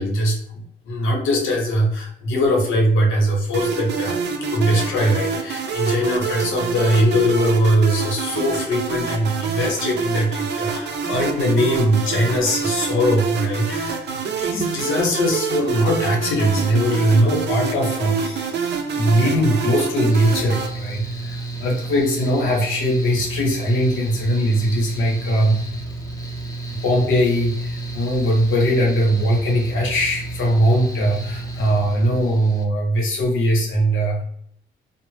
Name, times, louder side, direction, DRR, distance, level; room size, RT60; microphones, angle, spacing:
voice 1, 0.0-14.0 14.4-18.7 19.0-25.6 26.7-34.2, equal, 80° left, -1 dB, 0.9 m, -20 dB
sound 1, 3.5-20.7, right 6 dB, 60° right, 0.5 m, -26 dB
Mechanical fan, 20.1-32.6, right 3 dB, 15° left, 0.5 m, -31 dB
2.0 x 2.0 x 3.1 m, 0.67 s
cardioid pair, 90°, 20 cm